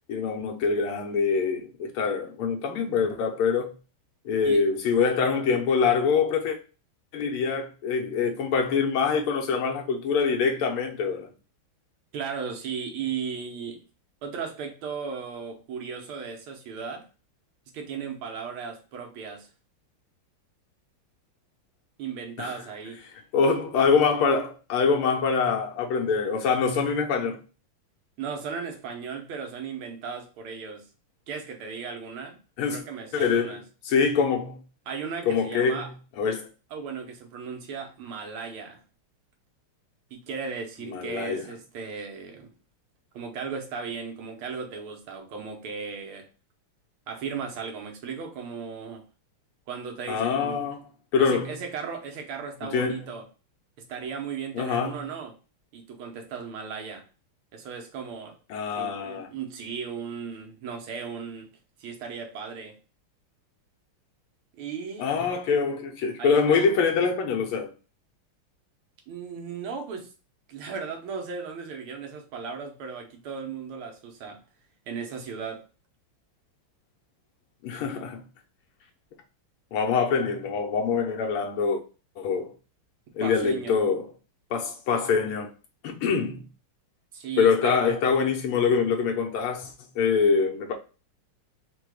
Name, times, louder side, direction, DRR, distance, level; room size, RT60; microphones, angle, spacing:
voice 1, 0.1-3.7 4.3-6.6 7.1-11.3 22.4-22.6 23.3-27.4 32.6-32.8 33.1-33.6 33.8-34.6 35.3-35.9 36.2-36.5 40.8-41.4 50.1-50.8 51.1-51.5 52.7-53.1 54.5-55.0 58.5-59.3 65.0-67.7 77.6-78.2 79.7-81.8 82.2-82.5 83.2-84.0 84.5-85.5 85.8-86.4 87.4-90.7, left 5 dB, 85° left, 1.8 m, -24 dB
voice 2, 12.1-13.8 14.2-17.1 17.7-19.5 22.0-23.0 28.2-30.9 31.3-32.4 32.7-33.6 34.9-35.9 36.7-38.8 40.1-42.5 43.1-46.3 47.1-49.1 49.7-50.7 51.2-53.3 53.9-55.4 55.7-57.0 57.5-58.4 58.8-61.5 61.8-62.8 64.5-65.1 66.2-66.7 69.1-70.1 70.5-74.4 74.9-75.6 83.2-83.8 87.1-87.9, right 6 dB, 80° right, 1.8 m, -36 dB
4.4 x 2.2 x 4.7 m
omnidirectional pair, 2.4 m